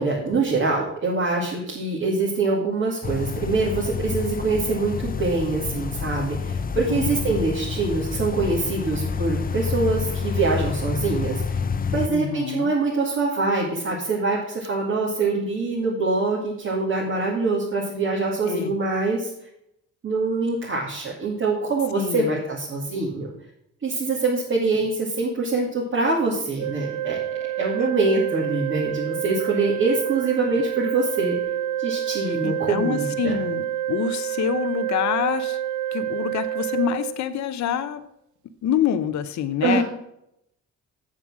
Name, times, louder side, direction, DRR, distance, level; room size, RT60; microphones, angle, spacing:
voice 1, 0.0-11.6 11.9-19.3 20.0-23.3 23.8-27.2 27.6-31.4 31.8-33.4 39.6-39.8, right 3 dB, 45° right, -5 dB, 2.3 m, -24 dB
sound 1, 3.0-12.1, left 5 dB, 30° left, 0.6 m, -28 dB
voice 2, 6.9-7.2 12.1-12.7 18.5-18.7 22.0-22.4 27.8-27.9 32.4-35.6 35.9-38.0 38.6-39.8, left 9 dB, 65° left, 11 dB, 0.8 m, -26 dB
Organ, 26.6-37.6, right 12 dB, 70° right, 0.7 m, -28 dB
7.7 x 7.4 x 6.2 m, 0.79 s
cardioid pair, 90°, 30 cm